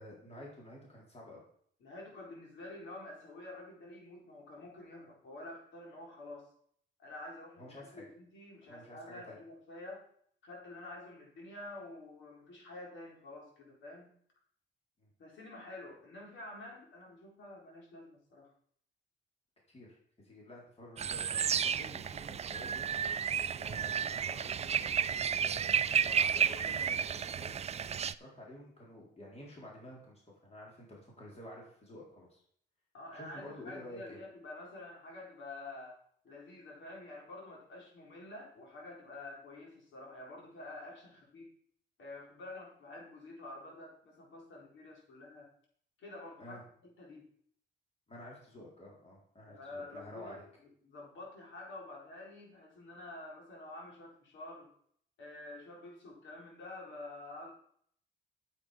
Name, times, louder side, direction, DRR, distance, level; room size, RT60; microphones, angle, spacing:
voice 1, 0.0-1.4 7.6-8.0 8.7-9.4 15.0-15.1 19.7-20.0 20.2-22.9 23.6-27.9 28.2-32.4 33.1-34.2 46.4-46.6 48.1-50.4, left 1 dB, 30° left, -3 dB, 3.9 m, -50 dB
voice 2, 1.8-6.5 7.0-10.1 10.4-14.1 15.2-18.5 32.9-36.0 36.2-41.5 42.0-45.5 46.0-47.3 49.5-54.7 55.2-57.5, left 2 dB, 70° left, -2 dB, 4.5 m, -48 dB
sound 1, 21.0-28.1, right 7 dB, 35° right, 0.4 m, -32 dB
8.6 x 8.2 x 5.1 m, 0.63 s
cardioid pair, 90°, 20 cm